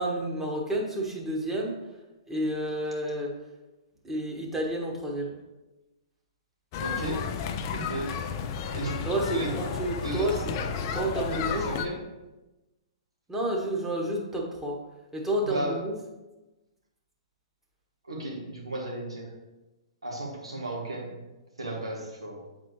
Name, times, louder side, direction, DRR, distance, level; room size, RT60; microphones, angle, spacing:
voice 1, 0.0-1.8 2.3-3.3 4.0-5.3 9.0-11.6 13.3-14.8 15.1-15.9, right 1 dB, 10° right, -2 dB, 1.3 m, -30 dB
sound 1, 6.7-11.8, left 7 dB, 40° left, 0.5 m, -32 dB
voice 2, 6.8-7.3 7.7-8.1 8.7-9.6 10.0-10.4 11.3-12.0 15.4-15.8 18.1-19.3 20.0-21.2 21.6-22.4, right 1 dB, 85° right, -2 dB, 1.6 m, -34 dB
8.3 x 4.3 x 3.1 m, 1.0 s
figure-of-eight pair, 115°, 3 cm